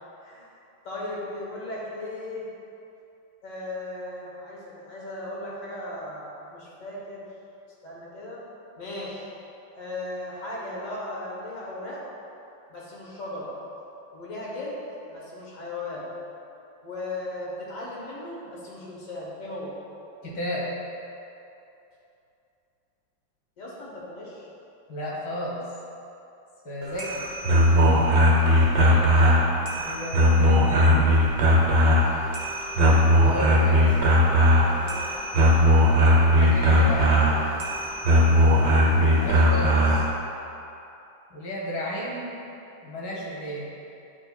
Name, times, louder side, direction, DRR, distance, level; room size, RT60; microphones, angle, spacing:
voice 1, 0.2-0.5 0.8-2.4 3.4-7.3 7.8-8.4 8.8-9.3 9.7-12.0 12.7-13.5 14.1-14.8 15.1-16.1 16.8-19.7 23.6-24.5 28.4-29.4 33.8-33.9 34.7-35.1, left 2 dB, 50° left, -6 dB, 1.5 m, -37 dB
voice 2, 20.2-20.7 24.9-25.6 26.7-27.2 27.6-27.9 28.6-28.7 29.5-31.0 33.2-33.9 36.3-37.2 39.0-40.0 41.3-42.3 42.8-43.7, left 1 dB, 80° left, -5 dB, 2.0 m, -33 dB
sound 1, 26.8-40.1, equal, 65° right, 1.4 m, -19 dB
9.3 x 4.7 x 2.3 m, 2.8 s
omnidirectional pair, 2.1 m